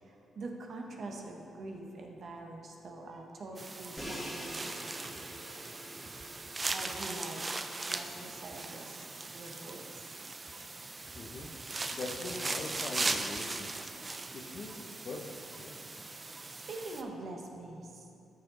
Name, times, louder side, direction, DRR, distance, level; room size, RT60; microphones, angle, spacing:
voice 1, 0.0-5.6 6.7-9.1 9.3-10.1 14.1-14.4 16.1-18.1, right 2 dB, 60° right, 1 dB, 1.3 m, -45 dB
sound 1, 3.6-17.0, right 3 dB, 35° right, 0.6 m, -39 dB
Crash cymbal, 4.0-9.9, equal, 5° left, 2.0 m, -47 dB
voice 2, 11.1-11.5 11.9-13.8 14.3-15.7, left 3 dB, 60° left, 2 dB, 1.1 m, -42 dB
13.0 x 4.9 x 4.0 m, 2.6 s
supercardioid pair, 55°, 0 cm